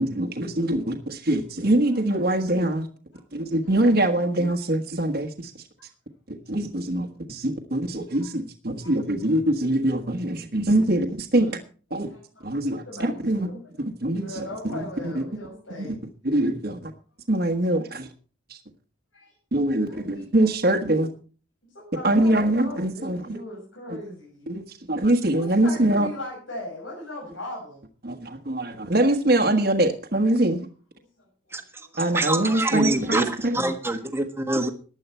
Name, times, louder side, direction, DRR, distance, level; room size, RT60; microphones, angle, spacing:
voice 1, 0.0-2.9 3.3-5.5 6.3-11.6 11.9-12.1 12.4-13.5 13.8-14.5 15.0-15.2 15.8-15.9 16.2-16.9 17.3-18.1 18.5-18.6 19.5-21.1 22.0-23.4 23.9-24.0 24.5-26.1 28.0-30.7 32.0-33.7, right 1 dB, 50° right, 1.4 m, -23 dB
voice 2, 3.3-3.7 6.4-6.5 8.1-8.3 8.8-8.9 12.0-13.6 14.2-15.9 19.1-19.3 19.9-20.0 21.7-24.5 25.4-27.8 31.2-31.9, left 1 dB, 85° left, 6.7 m, -39 dB
voice 3, 31.5-34.7, right 2 dB, 10° right, 1.4 m, -26 dB
15.0 x 10.5 x 4.4 m
head